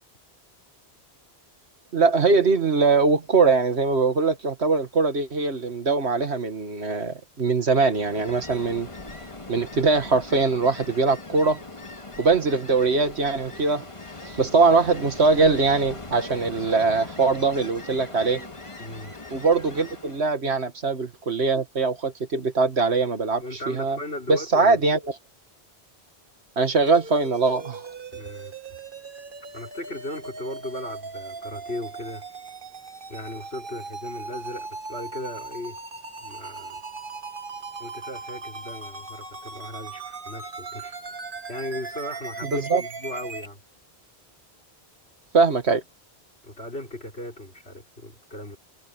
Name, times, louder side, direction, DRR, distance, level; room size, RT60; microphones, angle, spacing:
voice 1, 1.9-8.9 9.5-11.6 12.2-13.9 14.2-18.5 19.3-24.0 24.3-25.0 26.6-27.9 42.5-42.8 45.3-45.8, right 4 dB, 80° right, 2.1 m, -22 dB
Ocean, 7.6-20.4, left 2 dB, 30° left, 1.9 m, -41 dB
voice 2, 18.8-19.1 23.4-24.9 28.1-28.8 29.5-32.3 33.1-35.8 36.2-36.8 37.8-41.0 41.5-43.6 46.4-48.6, left 1 dB, 70° left, 5.5 m, -37 dB
sound 1, 26.9-43.5, right 4 dB, 55° right, 1.8 m, -39 dB
omnidirectional pair, 1.1 m